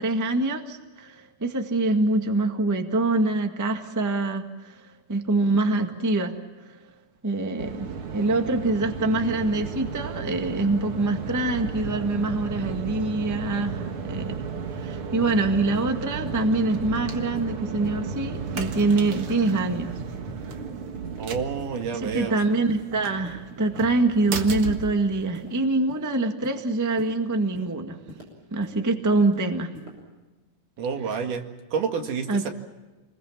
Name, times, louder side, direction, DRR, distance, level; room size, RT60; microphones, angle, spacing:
voice 1, 0.0-6.8 7.2-14.4 14.7-20.0 20.4-20.6 21.9-28.0 28.5-29.7 31.0-31.2 32.3-32.5, right 2 dB, 10° right, 5 dB, 0.9 m, -25 dB
sound 1, 7.6-25.6, right 5 dB, 50° right, 2.1 m, -34 dB
sound 2, 15.2-15.4 15.7-15.9 16.2-16.4 16.8-17.0 17.3-17.5 17.8-18.0 18.3-18.5 18.9-19.1 19.4-19.6 20.0-20.1 20.5-20.6 21.0-21.2 21.6-21.7 22.1-22.3 22.7-22.9 23.2-23.4 23.7-23.9 24.3-24.5 24.8-25.0 25.3-25.5 25.9-26.1 26.4-26.6 27.0-27.1 27.5-27.7 28.1-28.3 28.6-28.8 29.2-29.4 29.7-29.9, equal, 30° right, 6.6 m, -44 dB
voice 2, 21.2-22.3 30.8-31.4 31.7-32.3, right 6 dB, 85° right, 5 dB, 3.5 m, -28 dB
28.5 x 21.5 x 7.3 m, 1.2 s
omnidirectional pair, 3.6 m